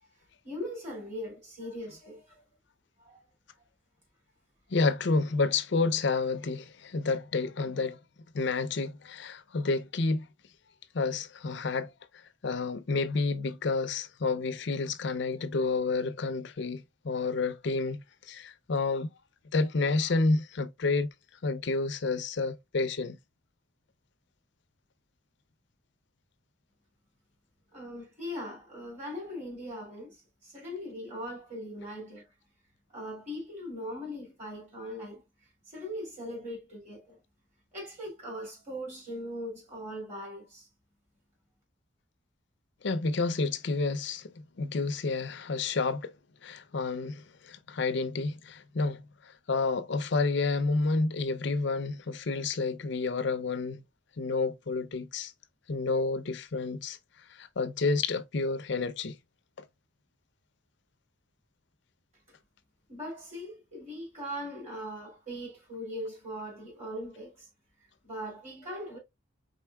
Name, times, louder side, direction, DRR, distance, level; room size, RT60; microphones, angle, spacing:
voice 1, 0.4-2.4 3.0-3.2 27.7-32.3 32.9-35.2 35.7-37.2 37.7-40.7 62.9-67.5 68.0-69.0, equal, 40° right, 2.8 m, -40 dB
voice 2, 4.7-8.0 8.3-10.3 10.9-11.9 12.4-18.0 18.3-19.1 19.5-21.1 21.4-23.2 42.8-44.3 44.6-46.1 46.4-49.0 49.5-53.8 54.2-55.3 55.7-57.0 57.4-59.2, left 3 dB, 65° left, 0.6 m, -29 dB
4.6 x 3.8 x 2.2 m
head